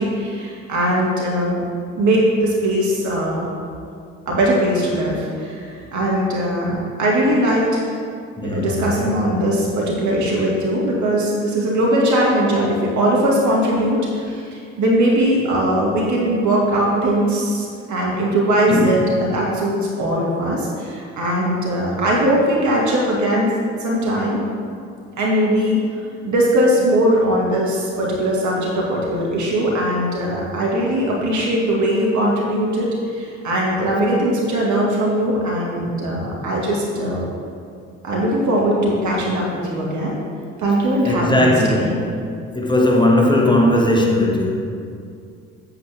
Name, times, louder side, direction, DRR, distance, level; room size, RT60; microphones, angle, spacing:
voice 1, 0.0-1.6 1.9-3.5 4.3-7.9 8.4-23.5 23.8-24.4 25.2-25.8 26.2-37.3 38.0-40.2 40.6-41.9, right 1 dB, 50° right, -4 dB, 2.1 m, -20 dB
voice 2, 8.4-8.9 18.7-19.2 41.0-42.2 42.5-44.6, left 1 dB, 10° left, -2 dB, 1.9 m, -18 dB
8.6 x 7.9 x 3.6 m, 2.3 s
hypercardioid pair, 50°, 37 cm